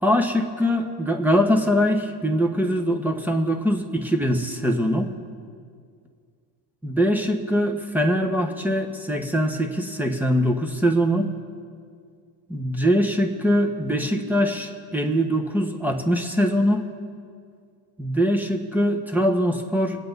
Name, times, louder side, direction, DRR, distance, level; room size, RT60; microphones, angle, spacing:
voice 1, 0.0-5.1 6.8-11.3 12.5-16.9 18.0-20.0, equal, 5° right, 3 dB, 1.2 m, -22 dB
23.5 x 8.6 x 4.0 m, 2.2 s
supercardioid pair, 105°, 47 cm